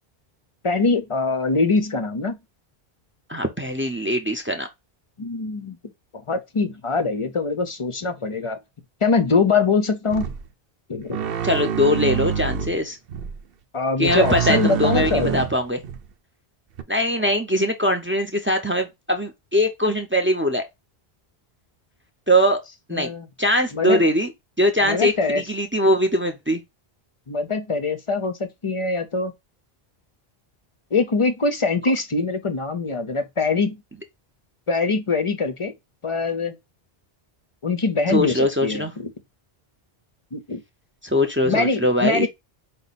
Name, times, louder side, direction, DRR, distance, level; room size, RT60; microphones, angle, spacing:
voice 1, 0.6-2.4 5.2-5.8 6.1-8.6 9.0-10.3 10.9-11.2 13.7-15.4 22.9-23.3 23.7-24.0 24.8-25.5 27.3-29.3 30.9-33.8 34.7-35.7 36.0-36.6 37.6-39.1 40.3-40.6 41.4-42.3, left 4 dB, 40° left, 0.5 m, -23 dB
voice 2, 3.3-4.7 11.4-13.0 14.0-15.8 16.9-20.6 22.3-22.6 22.9-23.1 23.4-24.3 24.6-25.1 25.5-26.6 38.1-38.9 41.0-42.3, equal, 15° right, 0.5 m, -21 dB
sound 1, 10.1-10.4 11.1-12.8 13.1-13.3 14.1-16.0 16.8-16.9, right 7 dB, 65° right, 0.8 m, -26 dB
5.0 x 2.2 x 4.0 m
omnidirectional pair, 1.0 m